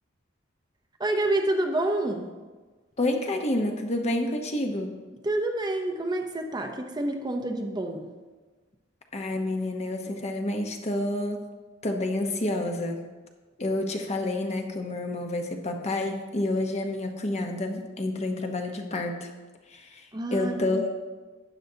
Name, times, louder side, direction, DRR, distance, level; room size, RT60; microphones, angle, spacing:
voice 1, 1.0-2.3 5.2-8.1 20.1-20.9, right 1 dB, 20° right, 3 dB, 0.7 m, -28 dB
voice 2, 3.0-5.0 9.1-11.4 11.8-13.0 13.6-19.3 19.7-20.9, left 1 dB, 35° left, 3 dB, 0.9 m, -29 dB
12.0 x 9.1 x 2.8 m, 1.3 s
head